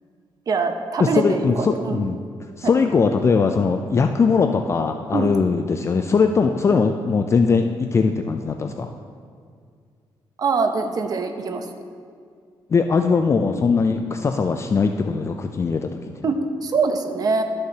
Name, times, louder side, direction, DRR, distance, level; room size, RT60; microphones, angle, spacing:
voice 1, 0.5-2.1 2.6-2.7 5.1-5.3 10.4-11.7 16.2-17.4, right 4 dB, 45° right, 6 dB, 0.7 m, -23 dB
voice 2, 1.0-2.2 2.6-8.9 12.7-16.1, left 5 dB, 30° left, 6 dB, 0.3 m, -20 dB
12.5 x 6.6 x 2.8 m, 2.2 s
cardioid pair, 120°, 9 cm